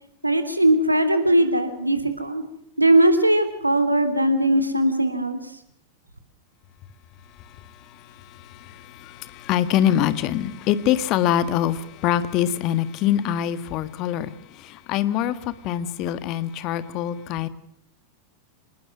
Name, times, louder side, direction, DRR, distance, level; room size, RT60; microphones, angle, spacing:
voice 1, 0.2-2.4 2.8-5.4, right 1 dB, 85° right, 10 dB, 3.0 m, -19 dB
voice 2, 7.4-17.5, left 11 dB, 40° left, 14 dB, 1.6 m, -25 dB
27.0 x 20.5 x 6.1 m, 0.69 s
figure-of-eight pair, 90°, 0 cm